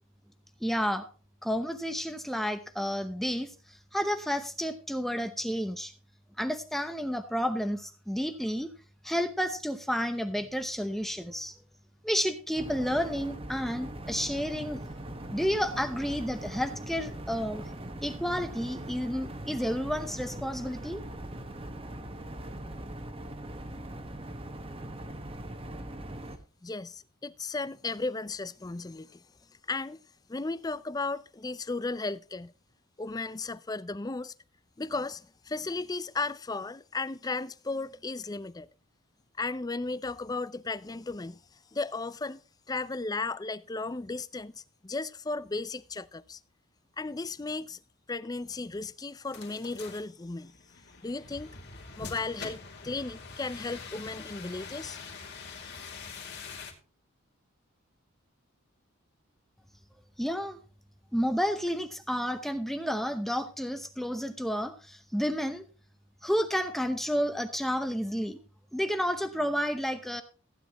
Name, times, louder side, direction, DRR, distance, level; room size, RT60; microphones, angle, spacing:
voice 1, 0.6-1.1 1.4-5.9 6.4-8.7 9.0-11.5 12.0-14.8 15.3-17.6 18.0-21.0 60.2-60.6 61.1-65.6 66.2-68.4 68.7-70.2, equal, ahead, 0.8 m, -31 dB
sound 1, 12.6-26.4, right 1 dB, 25° right, 1.3 m, -41 dB
voice 2, 26.6-29.2 29.7-30.0 30.3-32.5 33.0-34.3 34.8-38.7 39.4-41.4 41.7-42.4 42.7-46.4 47.0-47.8 48.1-50.5 51.0-51.6 52.0-55.0, left 3 dB, 20° left, 0.4 m, -35 dB
sound 2, 49.3-56.7, left 5 dB, 50° left, 2.7 m, -44 dB
15.5 x 10.0 x 3.0 m
head